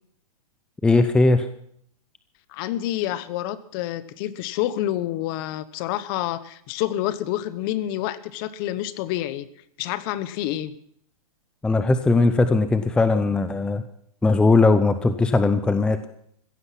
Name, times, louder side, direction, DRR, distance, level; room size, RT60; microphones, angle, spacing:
voice 1, 0.8-1.5 11.6-13.8 14.2-16.0, left 3 dB, 5° left, 10 dB, 0.6 m, -19 dB
voice 2, 2.5-9.5 9.8-10.7, left 13 dB, 40° left, 15 dB, 1.0 m, -28 dB
15.5 x 14.5 x 5.9 m, 0.67 s
hypercardioid pair, 150°, 19 cm